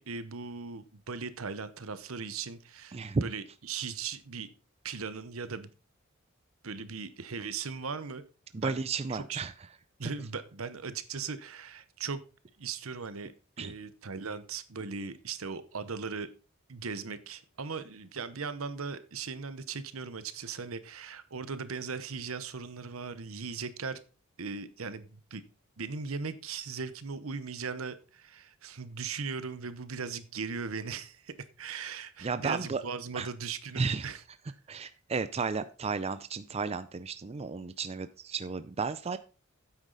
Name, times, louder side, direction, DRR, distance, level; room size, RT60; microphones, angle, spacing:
voice 1, 0.0-4.5 4.8-5.7 6.6-8.3 8.5-8.8 9.1-9.4 10.0-12.2 12.6-16.3 16.7-24.0 24.4-25.4 25.8-34.2, right 5 dB, 75° right, 13 dB, 0.9 m, -38 dB
voice 2, 2.9-3.3 8.5-9.5 13.6-13.8 32.2-32.8 33.1-33.3 33.8-34.2 34.7-39.2, right 4 dB, 30° right, 12 dB, 0.5 m, -33 dB
9.5 x 8.2 x 4.0 m, 0.35 s
head